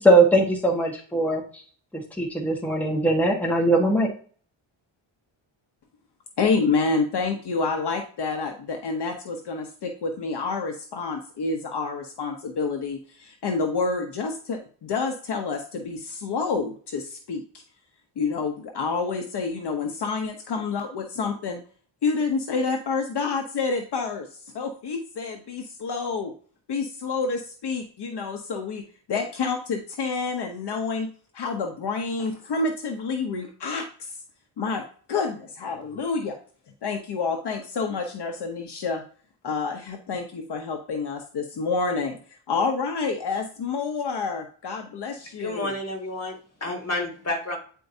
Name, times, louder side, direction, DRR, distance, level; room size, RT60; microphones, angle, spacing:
voice 1, 0.0-1.6 1.9-4.1, right 1 dB, 5° left, -1 dB, 1.4 m, -21 dB
voice 2, 6.4-17.6 18.2-21.6 22.0-26.3 26.7-28.8 29.1-34.2 34.6-36.4 36.8-39.0 39.4-42.2 42.5-45.7, left 4 dB, 60° left, 4 dB, 0.9 m, -28 dB
voice 3, 45.4-47.6, left 2 dB, 30° left, 1 dB, 2.1 m, -30 dB
9.1 x 4.6 x 2.7 m, 0.44 s
wide cardioid pair, 125°, 46 cm